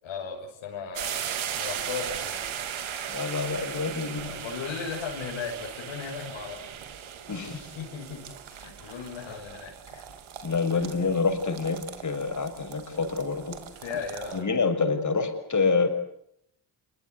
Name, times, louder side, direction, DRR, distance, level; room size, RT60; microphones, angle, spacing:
voice 1, 0.0-2.4 4.1-7.1 7.4-10.0 10.7-10.8 13.8-14.5, left 6 dB, 80° left, -1 dB, 6.6 m, -37 dB
sound 1, 1.0-14.4, right 9 dB, 80° right, 3.6 m, -38 dB
voice 2, 3.1-4.3 7.3-7.6 10.4-13.6 14.3-15.9, left 4 dB, 40° left, 7 dB, 6.6 m, -27 dB
28.0 x 23.0 x 8.2 m, 0.75 s
cardioid pair, 75°, 47 cm